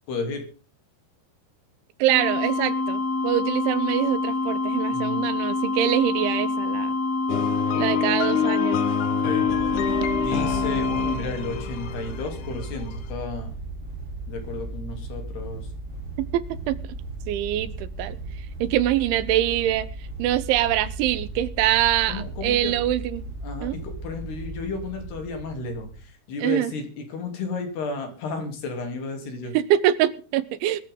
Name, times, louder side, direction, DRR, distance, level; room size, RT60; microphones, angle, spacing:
voice 1, 0.1-0.4 4.9-5.4 9.2-9.6 10.1-13.6 14.3-15.7 22.1-22.8 23.4-29.5, left 3 dB, 60° left, 5 dB, 5.2 m, -33 dB
voice 2, 2.0-6.9 7.7-8.8 16.2-16.8 17.3-18.2 18.6-19.9 20.2-23.2 23.6-23.8 26.4-26.7 29.5-30.8, right 13 dB, 80° right, 14 dB, 3.4 m, -24 dB
sound 1, 2.1-11.2, left 3 dB, 40° left, 4.1 m, -26 dB
sound 2, 7.3-13.1, left 10 dB, 90° left, 1.7 m, -28 dB
sound 3, 9.5-26.0, right 2 dB, 30° right, 5.2 m, -36 dB
20.0 x 14.5 x 3.8 m, 0.37 s
omnidirectional pair, 5.4 m